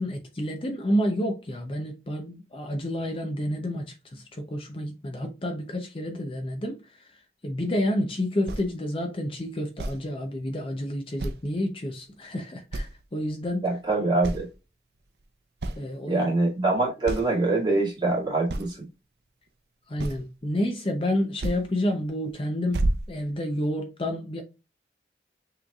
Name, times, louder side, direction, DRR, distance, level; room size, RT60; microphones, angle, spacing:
voice 1, 0.0-7.1 7.4-13.7 15.8-16.3 19.9-24.4, left 1 dB, 30° left, 0.6 m, -29 dB
sound 1, 8.5-8.7 9.8-10.0 11.2-11.5 12.0-12.1 12.7-13.0 13.4-13.9 14.2-14.5 15.2-15.3 15.6-15.8 16.6-16.7 17.0-17.3 18.5-18.7 20.0-20.4 21.4-21.6 22.0-22.3 22.7-23.7, right 1 dB, 65° right, 0.6 m, -30 dB
voice 2, 13.6-14.5 16.1-18.9, right 2 dB, 25° right, 2.1 m, -24 dB
6.1 x 3.2 x 2.3 m
head